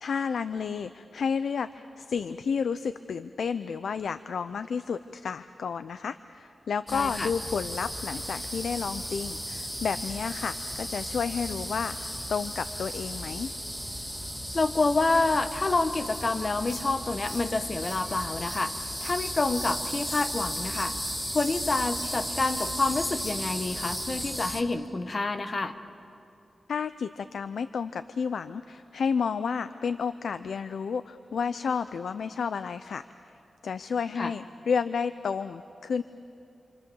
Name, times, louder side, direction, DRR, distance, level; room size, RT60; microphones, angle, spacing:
voice 1, 0.0-13.5 26.7-33.0 33.6-36.0, left 6 dB, 90° left, 12 dB, 0.5 m, -31 dB
voice 2, 6.9-7.3 14.5-18.7 19.0-21.0 21.3-25.8 34.2-34.3, left 3 dB, 40° left, 8 dB, 1.1 m, -28 dB
sound 1, 6.9-24.6, equal, 5° left, 2.1 m, -35 dB
28.5 x 26.0 x 7.1 m, 2.7 s
wide cardioid pair, 105°, 0 cm